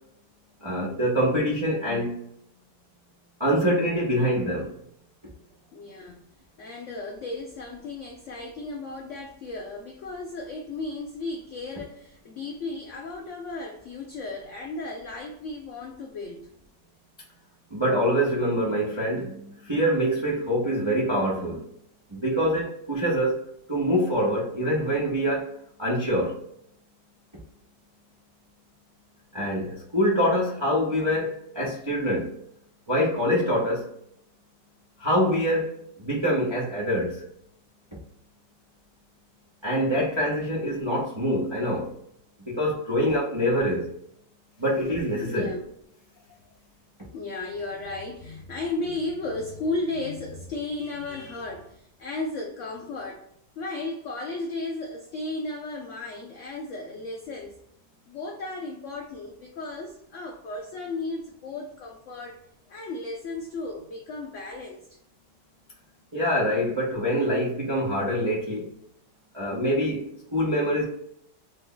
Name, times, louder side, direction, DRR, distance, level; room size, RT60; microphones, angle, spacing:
voice 1, 0.6-2.2 3.4-4.7 17.7-21.6 22.1-25.5 25.8-26.4 29.3-32.3 32.9-33.9 35.0-35.7 36.0-37.2 39.6-41.9 42.5-43.9 44.6-45.5 66.1-68.7 69.3-70.8, equal, 35° right, 0.4 m, -25 dB
voice 2, 5.7-6.2 6.6-16.5 45.2-45.6 46.2-46.5 47.1-53.3 53.6-57.5 58.1-62.4 62.7-65.0, left 2 dB, 85° left, 0.6 m, -35 dB
3.2 x 2.2 x 3.7 m
omnidirectional pair, 1.8 m